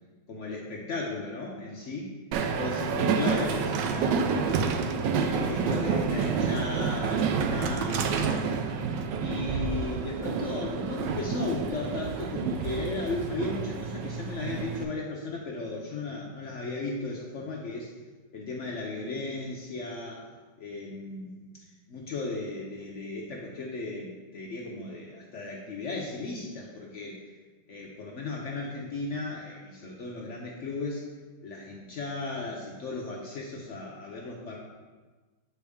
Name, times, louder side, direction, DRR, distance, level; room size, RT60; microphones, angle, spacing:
voice 1, 0.3-2.1 2.6-4.6 5.2-8.6 9.2-17.9 18.3-20.2 20.6-27.2 27.7-31.0 31.4-34.6, left 3 dB, 80° left, -2 dB, 0.6 m, -36 dB
Train, 2.3-14.8, right 5 dB, 75° right, 1.1 m, -29 dB
8.2 x 4.4 x 3.5 m, 1.3 s
omnidirectional pair, 2.2 m